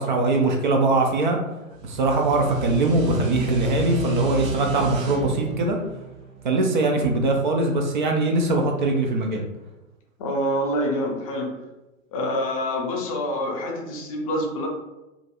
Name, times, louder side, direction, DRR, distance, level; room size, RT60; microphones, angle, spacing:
voice 1, 0.0-1.4 1.8-5.8 6.4-9.4, right 2 dB, 40° right, 2 dB, 0.4 m, -22 dB
sound 1, 1.7-7.1, right 2 dB, 70° right, 0.9 m, -31 dB
voice 2, 10.2-11.6 12.1-14.7, equal, 25° left, 0 dB, 0.5 m, -26 dB
2.9 x 2.5 x 2.8 m, 1.0 s
figure-of-eight pair, 110°, 40 cm